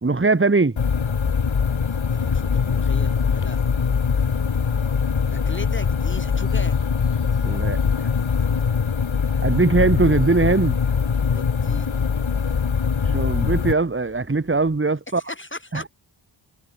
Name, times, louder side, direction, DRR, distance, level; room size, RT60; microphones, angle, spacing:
voice 1, 0.0-0.8 7.4-8.1 9.4-10.8 13.0-15.2 15.7-15.9, right 3 dB, 25° right, 1.5 m, -20 dB
sound 1, 0.8-13.7, left 6 dB, 70° left, 1.9 m, -22 dB
voice 2, 1.9-3.6 4.7-4.9 5.3-6.8 11.3-12.0 14.9-15.9, left 2 dB, 25° left, 6.4 m, -37 dB
sound 2, 2.5-14.8, left 3 dB, 40° left, 4.8 m, -48 dB
wide cardioid pair, 55°, 49 cm